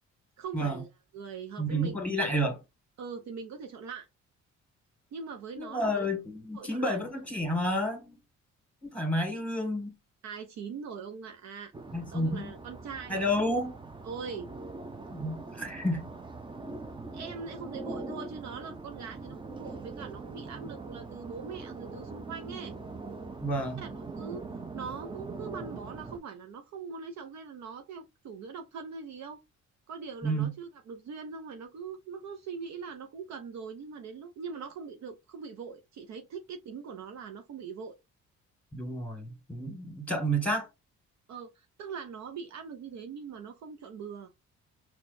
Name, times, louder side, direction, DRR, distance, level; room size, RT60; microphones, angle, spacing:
voice 1, 0.4-0.9 1.1-2.0 3.0-4.1 5.1-6.1 6.5-7.0 10.2-11.7 12.1-13.3 14.0-14.5 17.1-22.7 23.8-24.5 24.7-29.4 29.9-38.0 41.3-44.3, right 5 dB, 65° right, 0.6 m, -42 dB
voice 2, 1.6-2.6 5.6-8.2 8.8-9.9 11.9-12.5 13.1-13.8 15.1-16.1 23.4-23.8 30.2-30.5 38.7-40.7, equal, 5° left, 1.7 m, -30 dB
sound 1, 11.7-26.2, right 3 dB, 15° right, 0.5 m, -42 dB
4.3 x 2.3 x 2.5 m
cardioid pair, 90°, 30 cm